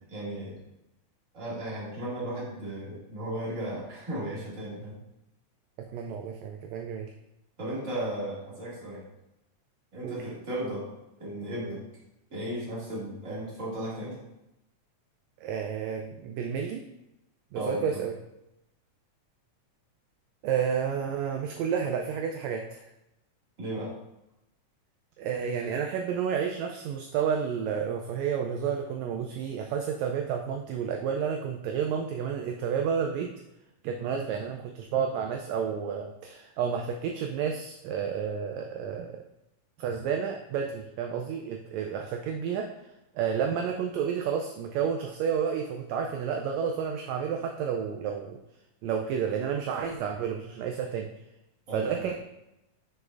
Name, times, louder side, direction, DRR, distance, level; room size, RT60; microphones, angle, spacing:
voice 1, 0.1-0.6 1.3-5.0 7.6-9.0 9.9-10.9 11.2-11.8 12.3-14.2 17.5-17.9 23.6-23.9 51.7-51.9, right 1 dB, 30° right, -7 dB, 2.1 m, -35 dB
voice 2, 5.8-7.1 10.0-10.2 15.4-16.8 17.5-18.1 20.4-22.8 25.2-33.4 33.8-39.2 39.8-42.7 43.1-48.4 48.8-51.1 51.7-52.3, right 7 dB, 80° right, 3 dB, 1.6 m, -30 dB
7.0 x 6.4 x 2.5 m, 0.91 s
omnidirectional pair, 3.5 m